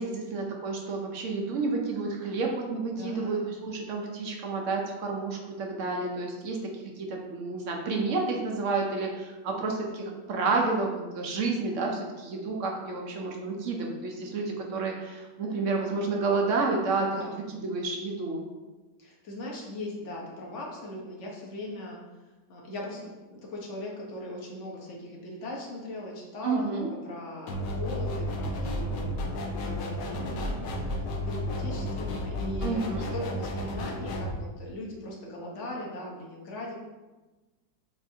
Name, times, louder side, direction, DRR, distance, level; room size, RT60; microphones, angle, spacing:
voice 1, 0.0-6.7 7.0-17.2 17.5-18.4 26.4-26.9 32.6-33.1, right 3 dB, 60° right, 0 dB, 0.8 m, -30 dB
voice 2, 2.9-3.6 17.0-17.4 19.0-22.0 22.5-32.9 33.1-36.7, left 1 dB, 50° left, -2 dB, 1.0 m, -39 dB
sound 1, 27.5-34.3, left 1 dB, 80° left, 1.3 m, -32 dB
7.3 x 2.6 x 2.6 m, 1.2 s
omnidirectional pair, 1.9 m